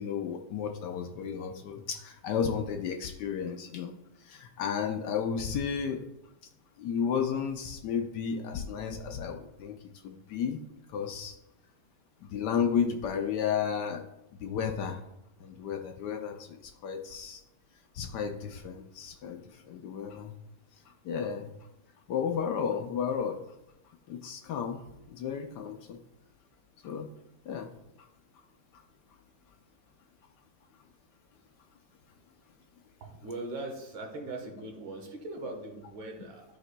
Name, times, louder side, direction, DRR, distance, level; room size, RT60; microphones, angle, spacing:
voice 1, 0.0-3.9 4.2-6.1 6.8-10.6 10.9-11.4 12.2-14.0 14.4-15.0 15.4-17.4 17.9-20.3 20.9-21.5 22.1-23.4 24.1-24.8 25.1-26.0 26.8-27.1 27.5-27.7 28.0-28.1 28.7-28.8, left 7 dB, 70° left, 5 dB, 1.1 m, -33 dB
voice 2, 33.0-36.4, right 2 dB, 75° right, 2 dB, 1.9 m, -40 dB
12.0 x 4.9 x 2.2 m, 0.87 s
omnidirectional pair, 2.1 m